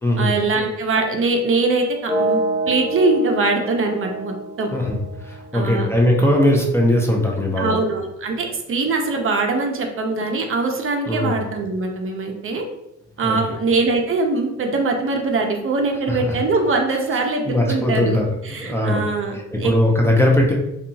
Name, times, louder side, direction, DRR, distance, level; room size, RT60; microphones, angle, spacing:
voice 1, 0.2-4.7 5.5-5.9 7.6-12.6 13.2-18.2 18.4-19.7, right 3 dB, 45° right, 3 dB, 0.5 m, -22 dB
sound 1, 2.1-6.0, right 1 dB, 5° right, 0.9 m, -27 dB
voice 2, 4.7-7.7 11.1-11.4 13.2-13.4 16.1-16.3 17.4-19.0 19.5-20.5, left 1 dB, 10° left, -1 dB, 0.5 m, -19 dB
2.7 x 2.3 x 2.6 m, 0.87 s
cardioid pair, 90°, 30 cm